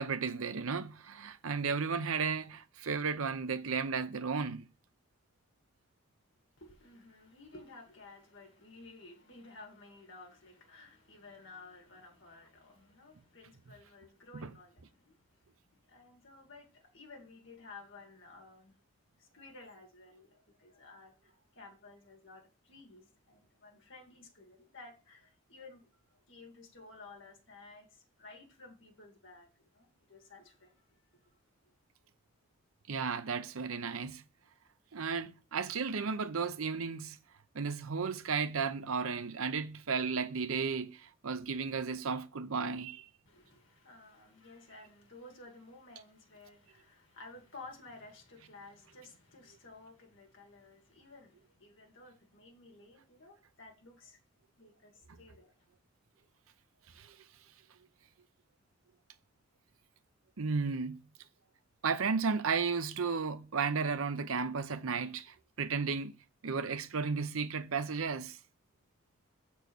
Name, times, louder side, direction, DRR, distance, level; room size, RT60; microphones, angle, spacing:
voice 1, 0.0-4.7 14.3-14.5 32.9-34.2 34.9-37.2 37.5-43.0 57.0-57.2 60.4-61.0 61.8-66.1 66.4-68.4, right 5 dB, 75° right, 0.7 m, -34 dB
voice 2, 6.6-15.2 15.9-18.7 19.2-25.8 26.1-31.3 43.3-54.2 54.6-55.5, left 3 dB, 60° left, 2.1 m, -54 dB
6.7 x 4.4 x 6.1 m
head